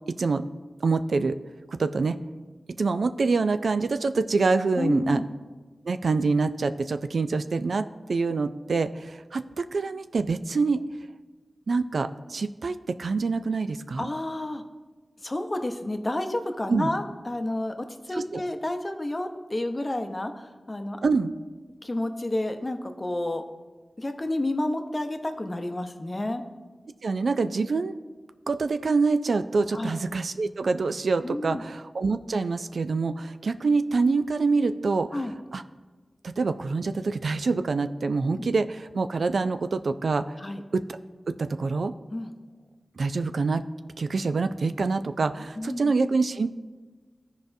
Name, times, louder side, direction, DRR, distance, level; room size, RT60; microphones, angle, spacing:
voice 1, 0.8-1.4 1.7-2.2 2.8-5.2 5.9-10.8 11.7-14.1 16.7-16.9 18.1-18.4 21.0-21.3 27.0-27.9 28.5-35.2 35.5-35.6 36.2-40.2 40.7-41.0 41.3-41.9 43.0-43.6 44.0-46.5, right 4 dB, 85° right, 10 dB, 0.3 m, -26 dB
voice 2, 4.8-5.2 14.0-14.6 15.2-21.0 21.8-23.4 24.0-26.4 29.7-30.0 31.2-31.6 35.1-35.3 38.4-38.5 40.4-40.6 42.1-42.3 45.6-45.9, left 1 dB, 30° left, 6 dB, 0.7 m, -30 dB
13.5 x 4.8 x 2.6 m, 1.3 s
wide cardioid pair, 65°, 0 cm